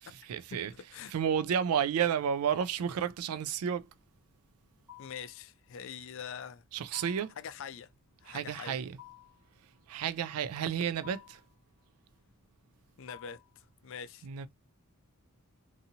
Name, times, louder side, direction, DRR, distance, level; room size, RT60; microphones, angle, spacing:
voice 1, 0.0-0.7 1.1-3.9 6.7-7.3 8.3-9.0 9.9-11.4 14.2-14.5, right 8 dB, 80° right, 0.3 m, -31 dB
voice 2, 0.5-1.1 5.0-6.6 7.4-7.9 8.2-8.8 13.0-14.3, left 7 dB, 60° left, 0.4 m, -44 dB
sound 1, 4.9-5.4 6.9-7.4 9.0-9.5 11.0-11.5 13.1-13.6, left 14 dB, 5° right, 1.0 m, -52 dB
2.7 x 2.6 x 2.7 m
head